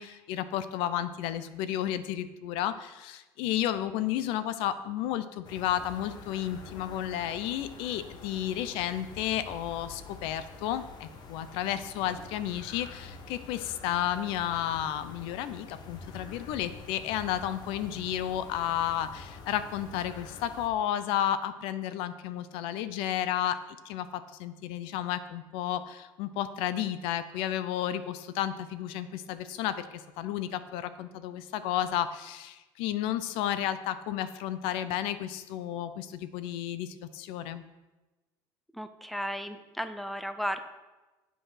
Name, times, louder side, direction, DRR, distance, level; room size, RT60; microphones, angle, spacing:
voice 1, 0.0-23.6 23.8-37.6, left 11 dB, 75° left, 13 dB, 0.6 m, -32 dB
sound 1, 5.4-20.7, left 4 dB, 50° left, 1.1 m, -47 dB
voice 2, 38.7-40.6, equal, ahead, 10 dB, 0.7 m, -34 dB
8.9 x 5.5 x 5.7 m, 1.1 s
cardioid pair, 115°, 9 cm